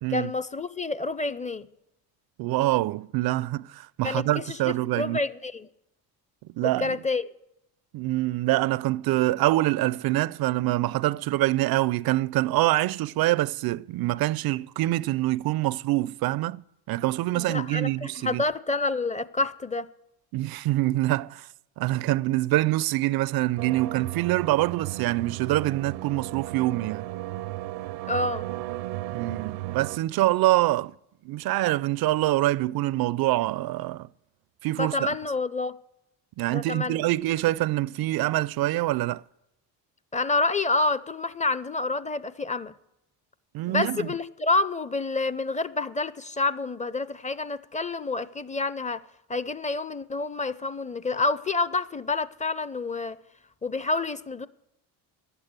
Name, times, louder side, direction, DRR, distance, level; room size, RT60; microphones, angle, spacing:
voice 1, 0.1-1.7 4.0-5.7 6.6-7.2 17.3-19.9 28.1-28.5 34.8-35.8 36.5-37.0 40.1-42.7 43.7-49.0 49.3-53.2 53.6-54.5, left 3 dB, 15° left, 0.6 m, -28 dB
voice 2, 2.4-5.2 6.6-7.0 7.9-18.4 20.3-21.5 21.8-27.1 29.1-30.9 31.2-34.1 34.6-35.1 36.4-39.2 43.5-44.1, right 17 dB, 55° right, 0.5 m, -25 dB
sound 1, 23.6-30.0, right 16 dB, 85° right, 0.7 m, -35 dB
11.5 x 8.3 x 8.7 m
supercardioid pair, 70°, 44 cm